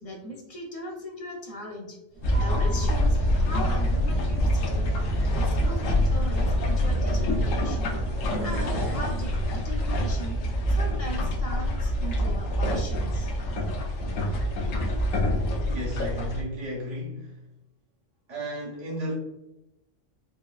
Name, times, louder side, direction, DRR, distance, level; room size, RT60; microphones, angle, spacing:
voice 1, 0.0-2.0 2.4-4.9 5.3-13.3, equal, 35° left, -1 dB, 0.7 m, -39 dB
sound 1, 2.1-9.6, right 1 dB, 70° right, 1.1 m, -37 dB
sound 2, 2.2-16.4, equal, 80° left, 1.0 m, -26 dB
voice 2, 15.6-17.4 18.3-19.1, equal, 30° right, -6 dB, 1.2 m, -33 dB
4.6 x 2.2 x 2.3 m, 0.92 s
omnidirectional pair, 1.3 m